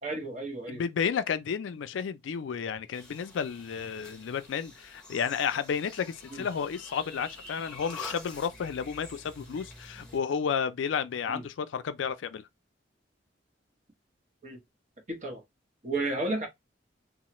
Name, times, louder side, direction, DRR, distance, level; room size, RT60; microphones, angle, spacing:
voice 1, 0.0-0.8 6.3-6.4 11.3-11.4 14.4-14.6 15.1-15.4 15.8-16.5, right 2 dB, 40° right, 1.0 m, -32 dB
voice 2, 0.7-12.5, left 7 dB, 75° left, 0.4 m, -32 dB
sound 1, 2.9-10.2, left 2 dB, 5° left, 0.9 m, -47 dB
3.1 x 2.0 x 2.9 m
head